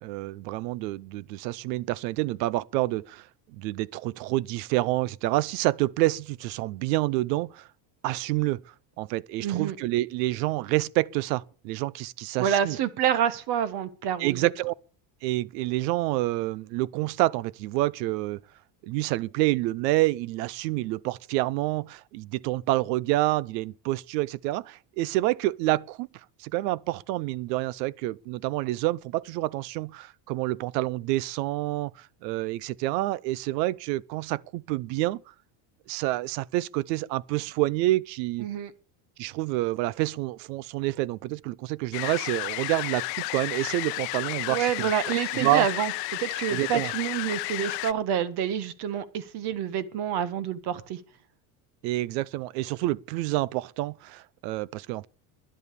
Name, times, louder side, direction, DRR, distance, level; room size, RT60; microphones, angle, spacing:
voice 1, 0.0-3.3 3.5-7.7 8.0-8.6 9.0-12.8 14.2-14.7 15.2-18.4 18.8-26.1 26.4-35.2 35.9-38.5 39.2-44.9 45.3-45.7 46.5-46.9 51.8-55.1, right 18 dB, 90° right, 0.7 m, -28 dB
voice 2, 9.4-9.8 12.4-14.5 38.4-38.7 44.5-45.9 46.2-51.0, right 9 dB, 55° right, 1.6 m, -28 dB
sound 1, 41.9-47.9, left 27 dB, 75° left, 0.7 m, -32 dB
11.0 x 10.5 x 6.8 m
cardioid pair, 145°, 48 cm